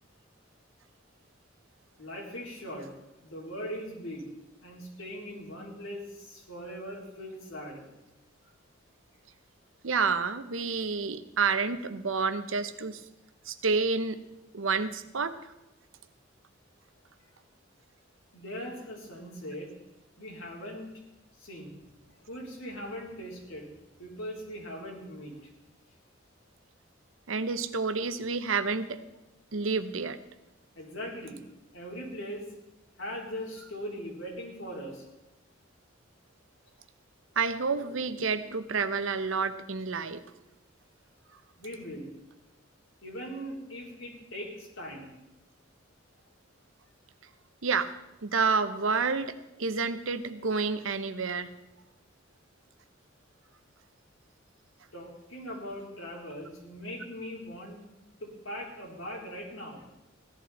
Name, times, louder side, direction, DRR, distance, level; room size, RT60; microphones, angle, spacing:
voice 1, 2.0-2.9 3.2-4.3 4.6-7.9 17.3-17.4 18.3-19.7 20.2-20.9 21.3-21.7 22.2-23.7 24.0-25.5 30.8-31.4 31.7-32.5 33.0-35.0 41.6-42.1 43.0-45.1 54.9-57.8 58.2-59.9, equal, 85° left, -2 dB, 3.7 m, -40 dB
voice 2, 9.8-13.0 13.5-14.2 14.5-15.4 27.3-29.0 29.5-30.2 37.4-40.2 47.6-47.9 48.2-49.3 49.6-51.5, right 4 dB, 80° right, 11 dB, 0.9 m, -29 dB
15.5 x 11.5 x 4.2 m, 0.98 s
head